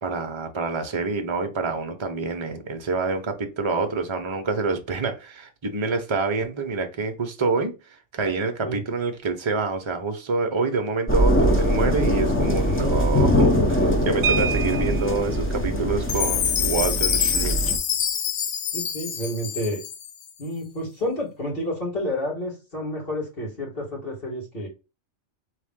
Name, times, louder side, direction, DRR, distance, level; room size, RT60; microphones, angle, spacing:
voice 1, 0.0-17.6, right 4 dB, 30° right, 0.7 m, -27 dB
sound 1, 11.1-17.8, equal, 15° left, 0.5 m, -22 dB
sound 2, 14.2-15.3 16.8-16.9 17.2-17.4 17.8-18.1, right 7 dB, 65° right, 0.8 m, -28 dB
Chime, 16.1-20.3, left 8 dB, 70° left, 0.9 m, -26 dB
voice 2, 18.7-19.8 20.4-24.7, left 1 dB, 50° left, 2.6 m, -30 dB
3.8 x 3.3 x 3.6 m
omnidirectional pair, 1.3 m